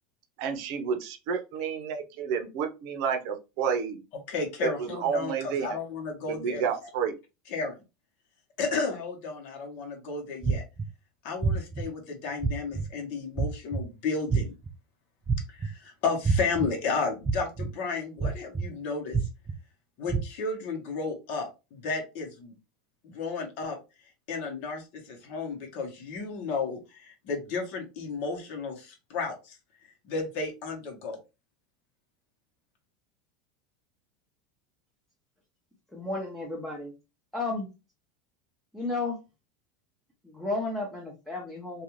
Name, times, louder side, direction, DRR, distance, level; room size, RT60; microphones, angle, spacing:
voice 1, 0.4-4.0 4.6-5.8 6.2-7.2, right 7 dB, 60° right, 6 dB, 0.7 m, -30 dB
voice 2, 4.3-6.6 7.5-7.8 8.6-10.6 11.2-14.5 15.5-19.2 20.0-22.5 23.0-23.8 24.3-29.6 30.0-31.2, left 4 dB, 50° left, 1 dB, 1.0 m, -33 dB
sound 1, 10.4-10.9 11.4-11.8 12.4-12.8 13.4-13.8 14.3-14.7 15.3-15.7 16.2-16.7 17.2-17.7 18.2-18.6 19.1-19.5 20.1-20.2, right 5 dB, 20° right, 0.3 m, -26 dB
voice 3, 35.9-36.9 37.3-37.7 38.7-39.2 40.2-41.8, left 2 dB, ahead, -3 dB, 0.7 m, -33 dB
2.5 x 2.3 x 3.0 m, 0.27 s
supercardioid pair, 145°, 4 cm